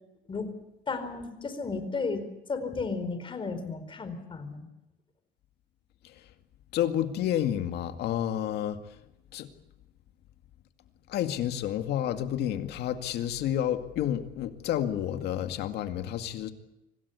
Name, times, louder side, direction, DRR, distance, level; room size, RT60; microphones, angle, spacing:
voice 1, 0.9-4.7, left 4 dB, 30° left, 9 dB, 4.5 m, -34 dB
voice 2, 6.7-8.8 9.3-9.5 11.1-16.5, left 11 dB, 75° left, 8 dB, 2.2 m, -30 dB
26.0 x 18.0 x 8.3 m, 0.92 s
cardioid pair, 110°, 17 cm